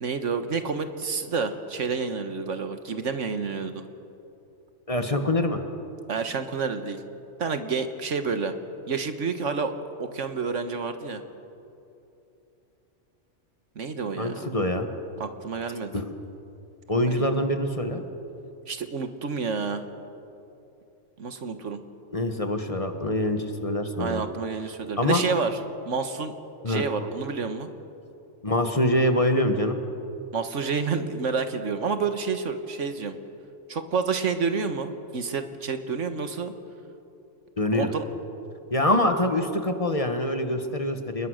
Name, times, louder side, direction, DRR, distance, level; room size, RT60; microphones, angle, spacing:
voice 1, 0.0-3.8 6.1-7.0 7.4-8.5 8.9-9.7 10.0-11.2 13.8-14.5 15.2-16.0 17.0-17.3 18.7-19.8 21.2-21.8 24.0-25.6 25.9-26.3 26.7-27.7 30.3-33.1 33.7-36.5 37.7-38.1, right 5 dB, 75° right, 8 dB, 1.6 m, -29 dB
voice 2, 4.9-5.6 14.2-14.9 15.9-16.1 16.9-18.0 22.1-24.2 25.0-25.2 26.6-26.8 28.4-29.8 37.6-37.9 38.7-41.3, left 1 dB, 30° left, 6 dB, 1.5 m, -25 dB
27.5 x 21.0 x 6.5 m, 2.8 s
omnidirectional pair, 1.3 m